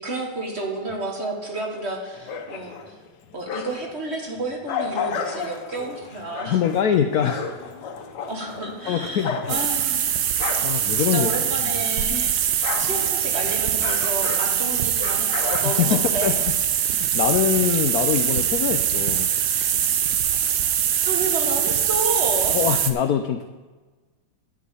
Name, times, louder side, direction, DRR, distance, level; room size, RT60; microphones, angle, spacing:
voice 1, 0.0-3.0 3.3-6.6 8.3-10.2 10.5-16.3 16.9-17.0 19.9-20.1 21.0-22.6, right 2 dB, 35° right, 0 dB, 1.5 m, -31 dB
sound 1, 2.1-4.0 4.4-12.0 12.2-16.5, left 6 dB, 65° left, 1.4 m, -33 dB
voice 2, 6.5-7.5 8.9-9.6 10.6-11.3 15.8-16.4 16.8-19.3 22.5-23.5, left 9 dB, 85° left, 7 dB, 0.8 m, -23 dB
sound 2, 9.5-22.9, right 9 dB, 65° right, 1.1 m, -23 dB
10.5 x 4.9 x 8.2 m, 1.3 s
omnidirectional pair, 2.3 m